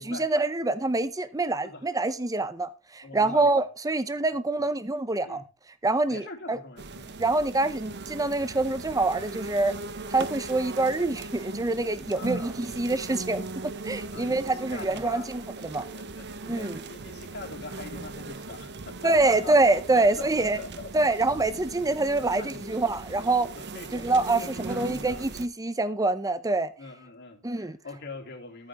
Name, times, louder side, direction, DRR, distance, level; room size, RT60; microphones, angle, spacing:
voice 1, 0.0-5.4 5.8-6.6 7.2-9.7 10.1-15.9 16.5-16.8 19.0-20.6 20.9-23.5 23.9-26.7 27.4-27.8, right 2 dB, 15° right, 0.7 m, -26 dB
voice 2, 3.0-3.7 4.6-4.7 5.2-5.5 6.1-7.2 12.1-12.5 14.1-15.3 15.7-16.2 16.5-19.5 19.9-21.1 22.3-22.6 23.5-24.1 24.4-25.3 26.8-28.7, left 3 dB, 55° left, 3.0 m, -43 dB
sound 1, 6.8-25.5, right 3 dB, 55° right, 0.9 m, -39 dB
14.0 x 9.3 x 3.5 m
head